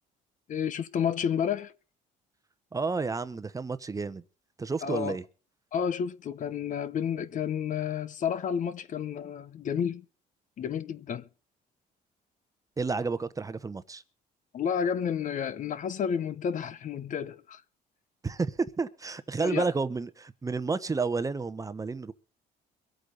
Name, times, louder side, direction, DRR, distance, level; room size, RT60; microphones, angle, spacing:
voice 1, 0.5-1.7 4.8-5.2 5.7-10.0 10.6-11.3 14.5-17.6 19.4-19.7, left 8 dB, 50° left, 0.9 m, -31 dB
voice 2, 2.7-4.2 4.6-5.2 12.8-14.0 18.2-22.1, right 4 dB, 20° right, 0.9 m, -31 dB
23.5 x 8.4 x 3.9 m
cardioid pair, 110°, 17 cm